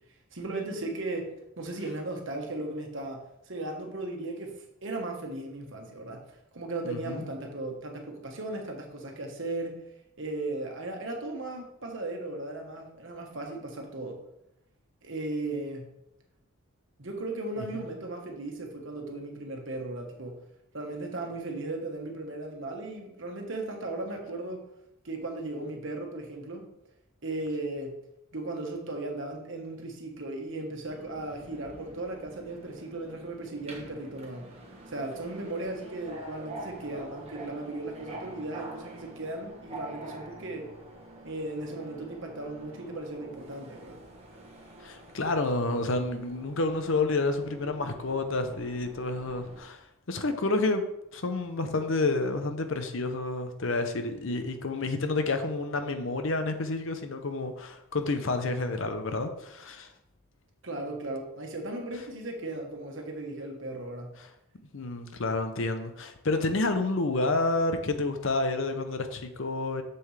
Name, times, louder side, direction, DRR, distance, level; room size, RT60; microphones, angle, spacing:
voice 1, 0.3-6.2 6.5-9.8 10.2-14.2 15.0-15.9 17.0-20.4 20.7-24.6 25.0-26.7 27.2-27.9 28.3-34.5 34.9-40.7 41.2-44.0 60.6-64.2, right 2 dB, 60° right, 1.4 m, -36 dB
voice 2, 6.8-7.2 44.8-50.8 51.1-59.9 64.7-69.8, left 2 dB, 60° left, 0.7 m, -29 dB
Subway metro underground, 30.9-49.6, right 1 dB, 30° right, 1.2 m, -46 dB
7.0 x 6.6 x 3.3 m
head